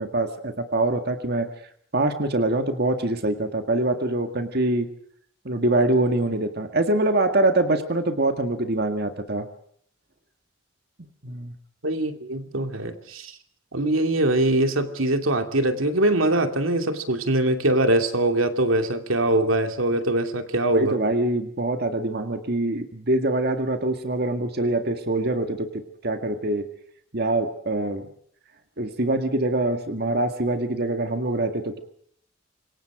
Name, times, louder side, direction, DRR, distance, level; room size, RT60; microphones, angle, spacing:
voice 1, 0.0-1.5 1.9-4.9 5.5-9.5 11.0-11.5 20.7-26.7 27.1-28.1 28.8-31.8, right 2 dB, 55° right, 7 dB, 1.9 m, -24 dB
voice 2, 11.8-13.4 13.7-21.0, right 1 dB, 90° right, 6 dB, 2.7 m, -22 dB
27.0 x 23.0 x 5.0 m, 0.64 s
head